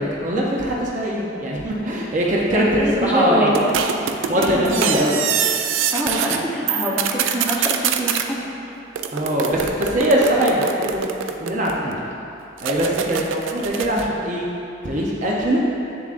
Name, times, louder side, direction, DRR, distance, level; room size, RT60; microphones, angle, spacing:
voice 1, 0.0-3.7 4.3-5.2 9.1-11.0 11.4-12.1 12.6-14.4 14.8-15.6, equal, 40° right, -4 dB, 0.6 m, -21 dB
voice 2, 2.5-3.7 4.3-4.9 5.9-8.4, equal, 10° right, -5 dB, 0.9 m, -24 dB
sound 1, 3.6-6.4 6.7-8.3 9.0-11.9 12.6-14.1, right 7 dB, 85° right, 0.4 m, -24 dB
7.8 x 7.1 x 2.5 m, 2.7 s
head